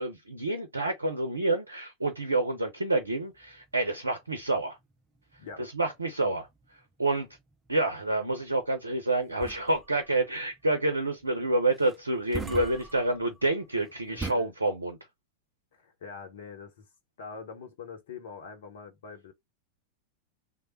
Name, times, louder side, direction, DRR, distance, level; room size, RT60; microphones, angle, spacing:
voice 1, 0.0-4.8 5.6-6.5 7.0-7.3 7.7-15.0, right 2 dB, 80° right, 0.6 m, -28 dB
sound 1, 3.0-14.3, right 3 dB, 10° right, 0.7 m, -44 dB
voice 2, 14.1-14.5 15.7-16.9 17.2-19.3, left 5 dB, 55° left, 0.8 m, -44 dB
3.2 x 2.1 x 4.1 m
figure-of-eight pair, 90°, 0 cm